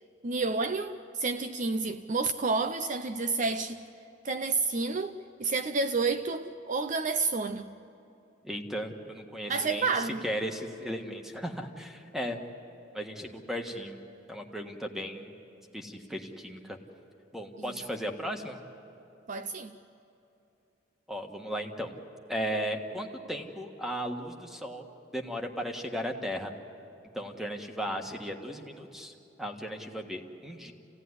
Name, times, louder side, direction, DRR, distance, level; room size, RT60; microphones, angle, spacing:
voice 1, 0.2-3.8 4.2-7.7 9.5-10.3 17.6-17.7 19.3-19.8, right 4 dB, 40° right, 0.5 m, -30 dB
voice 2, 8.4-9.9 10.2-12.4 12.9-14.0 14.3-15.3 15.7-16.8 17.3-18.6 21.1-21.9 22.3-24.9 25.1-26.5 27.1-30.7, equal, ahead, 1.5 m, -36 dB
28.5 x 17.0 x 9.8 m
head